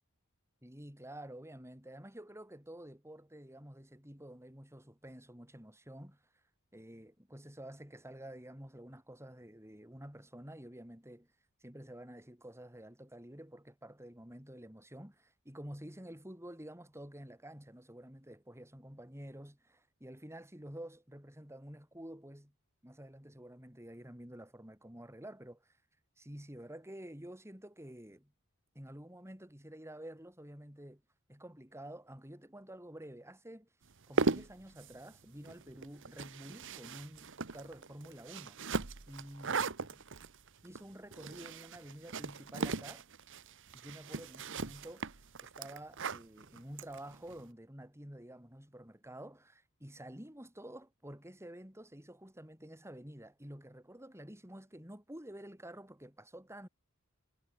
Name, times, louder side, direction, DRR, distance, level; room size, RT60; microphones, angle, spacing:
voice 1, 0.6-6.2 6.7-11.3 11.6-22.5 22.8-25.7 26.2-28.3 28.7-31.0 31.3-33.7 34.1-38.6 39.1-39.7 40.6-43.0 43.7-56.7, right 1 dB, 10° right, 6.5 m, -50 dB
sound 1, 33.9-47.4, right 3 dB, 60° right, 1.4 m, -39 dB
head